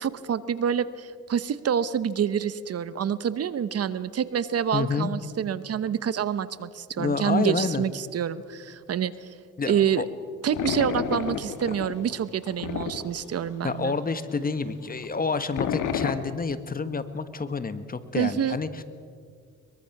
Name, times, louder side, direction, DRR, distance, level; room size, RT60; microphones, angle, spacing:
voice 1, 0.0-9.3 9.7-10.0 10.4-13.9 18.2-18.6, right 8 dB, 55° right, 15 dB, 0.9 m, -27 dB
voice 2, 4.7-5.1 7.0-7.8 9.6-10.1 13.6-18.8, left 4 dB, 30° left, 11 dB, 1.4 m, -28 dB
sound 1, 10.4-13.8 14.1-14.2 14.4-14.5 14.9-16.1, left 9 dB, 85° left, 1.6 m, -30 dB
23.0 x 22.5 x 6.0 m, 2.1 s
cardioid pair, 90°, 30 cm